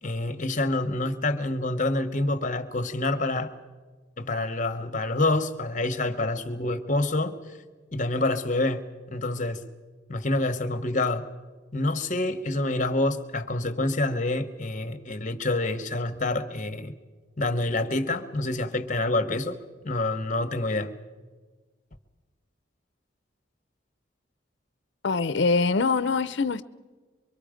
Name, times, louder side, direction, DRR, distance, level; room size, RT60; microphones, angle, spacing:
voice 1, 0.0-3.5 4.2-7.3 7.9-9.6 10.1-11.3 11.7-17.0 17.4-19.6 19.8-20.9, left 2 dB, 40° left, 1.1 m, -27 dB
voice 2, 25.0-26.7, left 4 dB, 65° left, 0.6 m, -24 dB
24.0 x 24.0 x 5.1 m
head